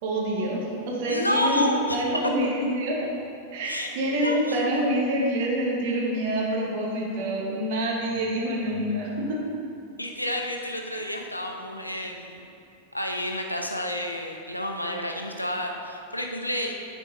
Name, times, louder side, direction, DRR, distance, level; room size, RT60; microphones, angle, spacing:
voice 1, 0.0-3.0 3.5-9.4, right 1 dB, 50° right, -3 dB, 1.6 m, -26 dB
voice 2, 1.1-2.0 3.6-4.6 10.0-12.4 12.9-16.7, left 1 dB, 85° left, 2 dB, 0.7 m, -30 dB
9.4 x 4.5 x 4.0 m, 2.5 s
figure-of-eight pair, 90°, 0 cm